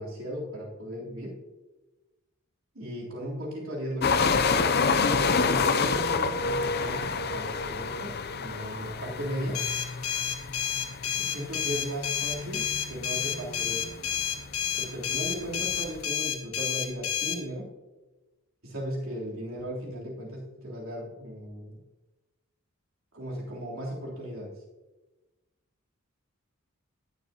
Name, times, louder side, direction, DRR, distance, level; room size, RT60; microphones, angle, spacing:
voice 1, 0.0-1.4 2.7-4.4 5.1-9.7 11.2-13.9 14.8-17.7 18.6-21.8 23.1-24.5, equal, 70° right, -4 dB, 3.4 m, -36 dB
sound 1, 4.0-16.0, left 4 dB, 45° left, 0.6 m, -29 dB
sound 2, 9.5-17.4, left 9 dB, 75° left, 1.6 m, -30 dB
18.5 x 7.2 x 2.9 m, 1.1 s
head